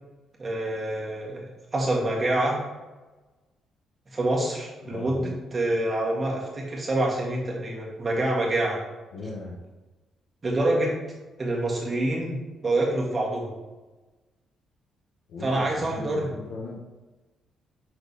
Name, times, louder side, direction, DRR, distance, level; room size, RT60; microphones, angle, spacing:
voice 1, 0.4-1.5 1.7-2.6 4.1-8.8 10.4-10.9 11.4-12.4 12.6-13.5 15.4-16.3, right 1 dB, 35° right, -3 dB, 1.8 m, -26 dB
voice 2, 4.8-5.3 9.1-9.6 15.3-16.7, left 3 dB, 80° left, -4 dB, 1.3 m, -37 dB
5.9 x 3.8 x 4.2 m, 1.2 s
cardioid pair, 90°, 0 cm